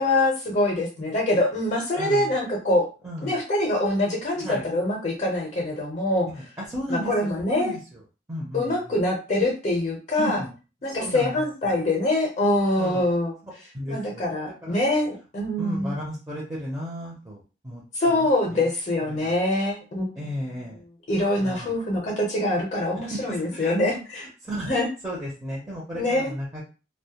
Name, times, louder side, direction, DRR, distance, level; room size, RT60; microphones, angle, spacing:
voice 1, 0.0-2.9 3.2-6.3 6.9-7.7 8.5-10.4 10.8-13.3 13.9-15.9 17.9-20.1 21.1-24.3 24.6-24.9 25.9-26.3, left 1 dB, 40° left, 0 dB, 0.5 m, -24 dB
voice 2, 2.0-2.3 3.0-3.4 4.4-4.7 6.3-8.0 8.3-9.0 10.2-10.5 10.8-11.4 12.8-13.0 13.7-14.3 14.6-14.8 15.6-18.7 19.1-19.3 20.2-20.8 21.4-21.7 23.0-23.7 24.2-24.7 25.0-26.6, equal, 15° right, -5 dB, 0.5 m, -34 dB
2.1 x 2.1 x 2.8 m, 0.33 s
head